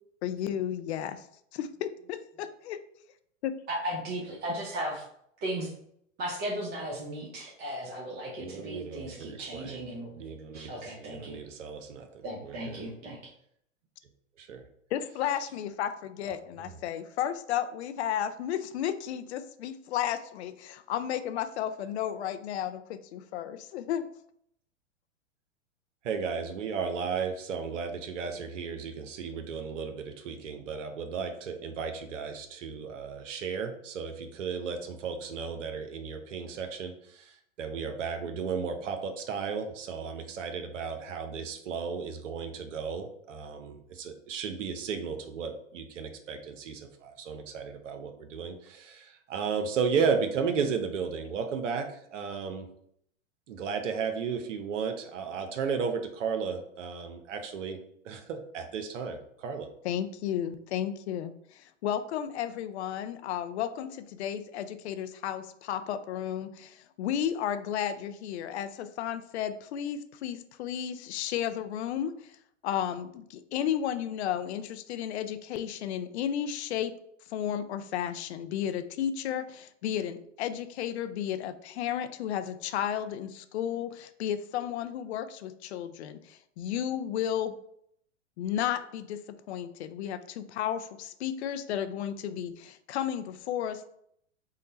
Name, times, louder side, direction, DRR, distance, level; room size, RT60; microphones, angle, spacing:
voice 1, 0.2-1.3 1.5-2.8 3.4-3.5 14.9-24.0 59.8-72.3 72.6-76.9 77.3-87.6 88.4-93.9, left 10 dB, 60° left, 11 dB, 0.5 m, -33 dB
voice 2, 3.7-5.0 5.4-5.7 6.2-11.4 12.2-13.2, right 1 dB, 25° right, -3 dB, 0.7 m, -36 dB
voice 3, 8.4-9.8 10.2-12.9 14.4-14.6 16.6-16.7 26.0-52.7 53.5-57.8 58.0-59.7, right 6 dB, 70° right, 6 dB, 0.7 m, -34 dB
3.7 x 2.1 x 4.0 m, 0.70 s
hypercardioid pair, 110°, 38 cm